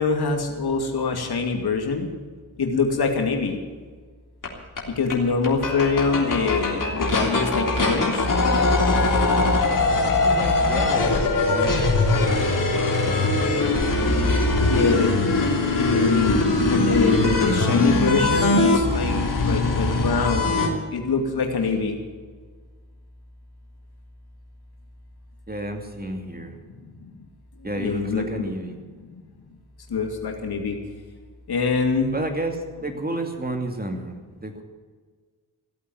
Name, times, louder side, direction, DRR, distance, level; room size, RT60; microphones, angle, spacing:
voice 1, 0.0-2.1 2.6-3.6 5.0-8.3 14.7-15.3 15.8-19.2 19.5-20.6 20.9-22.0 26.7-27.1 27.7-28.4 29.0-29.2 29.9-30.8 31.5-32.1, left 4 dB, 65° left, 3 dB, 2.5 m, -24 dB
sound 1, 4.4-4.5 4.8-4.9 5.1-5.2 5.4-20.7, left 2 dB, 50° left, 3.4 m, -21 dB
voice 2, 10.2-12.7 13.0-13.7 25.5-26.6 27.6-28.8 32.1-34.6, right 1 dB, 20° right, 4 dB, 2.7 m, -32 dB
16.0 x 8.5 x 9.4 m, 1.5 s
cardioid pair, 50°, 40 cm